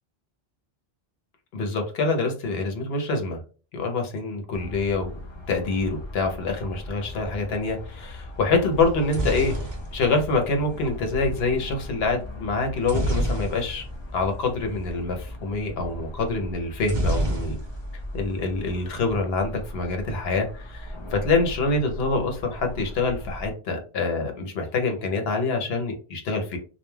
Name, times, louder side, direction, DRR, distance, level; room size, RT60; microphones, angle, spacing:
voice 1, 1.5-3.4 3.7-5.1 5.5-9.6 9.9-13.8 14.1-17.6 18.1-26.6, left 3 dB, 75° left, 4 dB, 0.9 m, -26 dB
sound 1, 4.5-23.5, left 1 dB, 45° left, 0.3 m, -38 dB
sound 2, 8.8-10.9 12.8-14.0 14.3-14.4 14.7-14.9 16.8-18.0 18.3-18.9, right 1 dB, 30° right, 0.8 m, -28 dB
2.2 x 2.2 x 3.1 m, 0.36 s
omnidirectional pair, 1.0 m